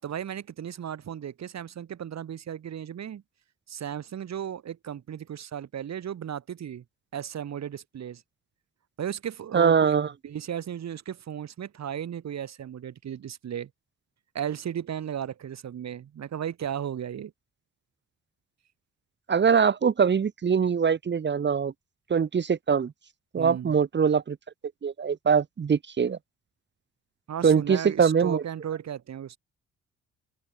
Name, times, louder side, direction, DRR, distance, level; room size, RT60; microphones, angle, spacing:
voice 1, 0.0-3.2 3.7-6.8 7.1-8.2 9.0-10.0 10.2-13.7 14.3-17.3 23.4-23.8 27.3-29.4, right 9 dB, 60° right, 7.9 m, -35 dB
voice 2, 9.5-10.1 19.3-21.7 22.1-22.9 23.3-24.4 24.8-26.2 27.4-28.4, right 6 dB, 35° right, 1.3 m, -23 dB
open air
cardioid pair, 90°, 30 cm